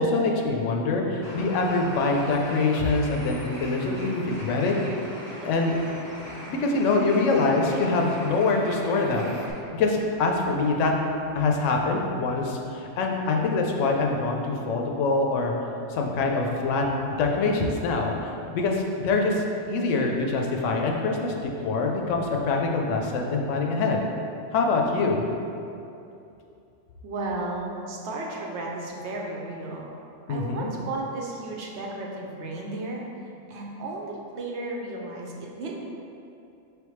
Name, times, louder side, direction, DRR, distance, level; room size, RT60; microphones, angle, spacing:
voice 1, 0.0-4.8 5.4-5.8 6.5-9.3 9.7-10.9 11.3-15.5 15.9-16.9 17.2-21.3 21.6-24.0 24.5-25.3 30.3-30.7, left 3 dB, 85° left, 1 dB, 0.9 m, -24 dB
Bird, 1.2-9.5, equal, 30° left, 0.5 m, -40 dB
voice 2, 27.0-29.9 30.3-33.0 33.5-35.8, right 2 dB, 70° right, -1 dB, 0.9 m, -34 dB
4.9 x 3.4 x 3.1 m, 2.7 s
omnidirectional pair, 1.2 m